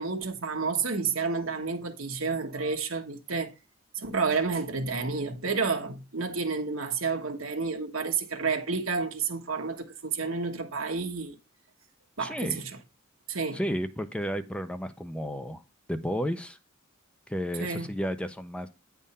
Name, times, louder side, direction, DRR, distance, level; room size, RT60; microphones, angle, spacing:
voice 1, 0.0-3.5 3.9-11.3 12.2-12.7 13.3-13.6 17.6-17.9, right 4 dB, 80° right, 1.4 m, -30 dB
voice 2, 12.2-12.6 13.5-15.6 15.9-16.6 17.3-18.7, equal, 5° left, 0.5 m, -32 dB
9.6 x 3.6 x 5.4 m
head